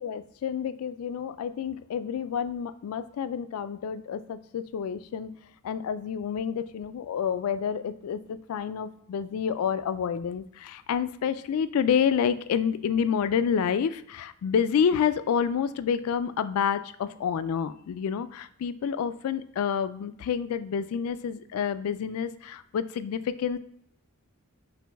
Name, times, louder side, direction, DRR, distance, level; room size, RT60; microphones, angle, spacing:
voice 1, 0.0-5.3 5.6-23.6, left 7 dB, 75° left, 13 dB, 0.3 m, -28 dB
6.0 x 2.6 x 3.4 m, 0.70 s
head